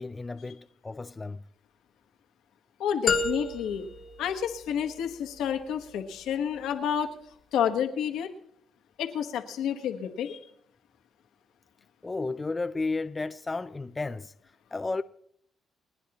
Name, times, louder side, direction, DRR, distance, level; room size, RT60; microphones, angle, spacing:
voice 1, 0.0-1.4 12.0-14.3 14.7-15.0, left 3 dB, 25° left, 0.5 m, -33 dB
voice 2, 2.8-3.9 4.2-7.1 7.5-8.3 9.0-10.4, left 8 dB, 85° left, 1.3 m, -29 dB
sound 1, 3.1-5.1, left 4 dB, 45° left, 1.3 m, -31 dB
28.5 x 10.0 x 3.0 m
cardioid pair, 90°, 0 cm